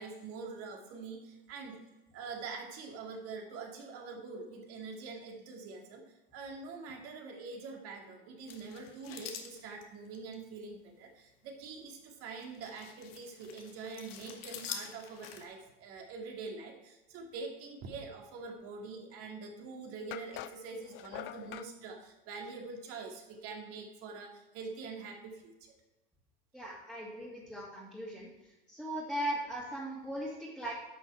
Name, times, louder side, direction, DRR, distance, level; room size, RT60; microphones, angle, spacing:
voice 1, 0.0-1.8 2.1-25.7, right 4 dB, 50° right, 2 dB, 2.3 m, -45 dB
sound 1, 8.5-10.3 11.4-11.7 12.4-15.4, left 8 dB, 80° left, 1.4 m, -46 dB
sound 2, 19.3-19.4 20.1-21.7, left 14 dB, 40° left, 0.5 m, -44 dB
voice 2, 26.5-28.3 28.7-30.7, right 1 dB, ahead, -7 dB, 2.3 m, -38 dB
11.0 x 6.3 x 4.6 m, 1.0 s
hypercardioid pair, 100°, 29 cm